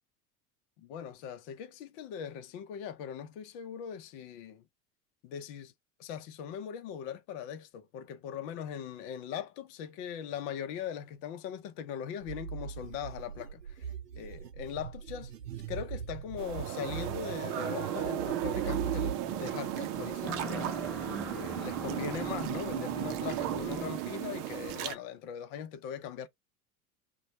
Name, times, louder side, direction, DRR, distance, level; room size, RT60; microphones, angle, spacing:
voice 1, 0.8-4.6 5.2-5.7 6.0-15.4 15.7-20.7 21.3-26.3, left 8 dB, 50° left, 0.8 m, -40 dB
sound 1, 12.2-19.2, right 7 dB, 85° right, 0.7 m, -40 dB
sound 2, 16.4-24.9, right 12 dB, 45° right, 0.6 m, -35 dB
sound 3, 18.4-23.9, left 2 dB, ahead, 0.5 m, -43 dB
3.0 x 2.4 x 2.8 m
figure-of-eight pair, 80°, 46 cm